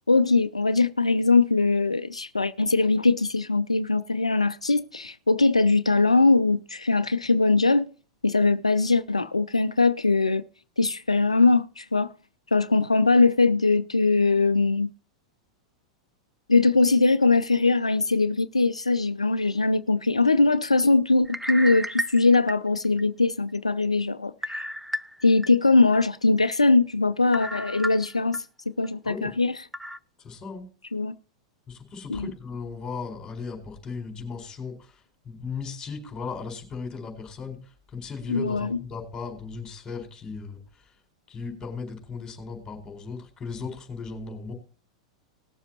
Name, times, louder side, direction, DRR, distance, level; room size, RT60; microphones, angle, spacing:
voice 1, 0.1-7.9 8.2-10.4 10.8-12.1 12.5-14.9 16.5-24.6 25.2-29.6 30.9-31.1 32.1-32.3 38.3-38.8, left 3 dB, 90° left, 0.4 m, -21 dB
sound 1, 21.2-23.0 23.5-23.6 24.4-25.5 25.9-26.0 27.3-28.4 28.8-28.9 29.7-30.0, right 1 dB, 5° right, 0.5 m, -32 dB
voice 2, 30.2-30.7 31.7-40.9 41.3-44.5, left 5 dB, 20° left, 4.4 m, -37 dB
19.5 x 7.2 x 2.9 m
figure-of-eight pair, 95°, 3 cm